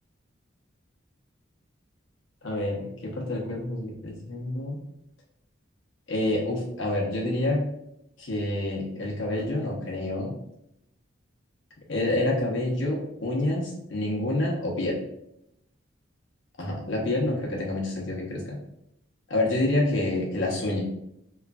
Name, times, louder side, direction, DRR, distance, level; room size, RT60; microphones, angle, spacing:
voice 1, 2.4-2.9 3.1-4.8 6.1-7.7 8.2-10.3 11.9-15.0 16.6-18.6 19.3-20.8, left 1 dB, 70° left, -1 dB, 0.8 m, -27 dB
3.1 x 2.4 x 2.2 m, 0.79 s
head